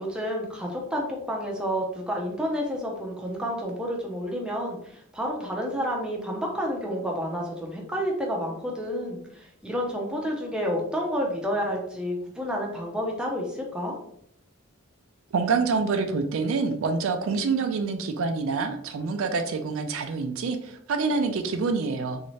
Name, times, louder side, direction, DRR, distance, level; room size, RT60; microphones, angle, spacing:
voice 1, 0.0-13.9, equal, 5° right, -1 dB, 0.6 m, -30 dB
voice 2, 15.3-22.2, right 4 dB, 65° right, 6 dB, 0.4 m, -26 dB
3.2 x 2.7 x 3.1 m, 0.72 s
head